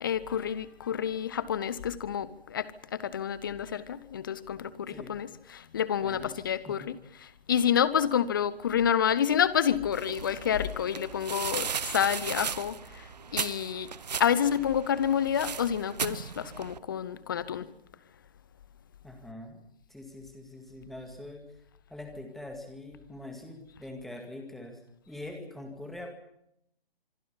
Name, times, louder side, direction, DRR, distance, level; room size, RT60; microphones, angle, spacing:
voice 1, 0.0-5.3 5.5-6.8 7.5-13.0 13.3-13.9 14.2-17.7, left 8 dB, 20° left, 18 dB, 0.8 m, -28 dB
voice 2, 4.9-5.2 6.0-6.9 19.0-19.6 19.9-21.5 21.9-24.8 25.1-26.1, left 1 dB, ahead, 4 dB, 2.0 m, -44 dB
sound 1, 9.9-16.8, right 6 dB, 45° right, 0.9 m, -37 dB
25.5 x 24.0 x 5.6 m, 0.75 s
figure-of-eight pair, 145°, 29 cm